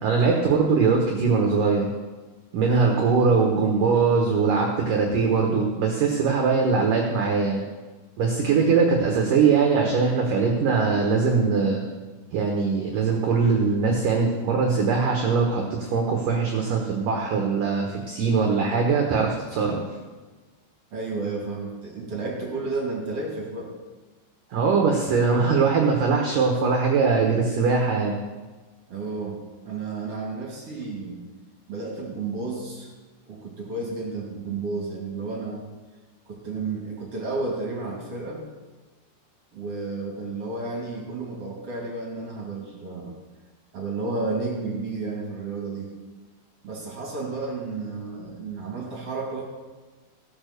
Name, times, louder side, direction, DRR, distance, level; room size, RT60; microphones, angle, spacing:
voice 1, 0.0-1.9 2.5-7.6 8.2-11.8 12.3-19.8 24.5-28.2, right 5 dB, 70° right, 0 dB, 2.0 m, -21 dB
voice 2, 20.9-23.7 28.9-31.2 31.7-32.9 33.3-35.7 36.3-38.5 39.5-43.1 43.7-45.9 46.6-49.5, right 3 dB, 40° right, -2 dB, 2.5 m, -32 dB
17.5 x 7.2 x 6.7 m, 1.3 s
omnidirectional pair, 5.7 m